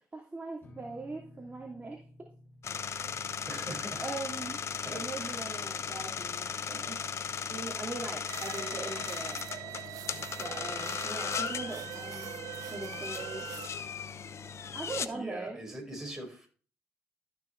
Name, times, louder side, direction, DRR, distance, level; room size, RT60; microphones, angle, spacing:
voice 1, 0.1-2.0 3.4-3.5 4.0-4.6 4.9-7.0 7.5-9.4 10.4-12.3 12.7-13.5 14.7-15.6, right 3 dB, 25° right, 2.7 m, -40 dB
sound 1, 0.6-8.2, left 1 dB, 35° left, 2.6 m, -58 dB
sound 2, 2.6-15.1, left 7 dB, 55° left, 0.8 m, -37 dB
voice 2, 3.5-4.1 4.8-5.6 15.1-16.5, right 1 dB, 10° right, 5.2 m, -42 dB
sound 3, 8.3-13.7, right 13 dB, 80° right, 0.4 m, -42 dB
13.5 x 7.0 x 3.2 m
cardioid pair, 85°, 6 cm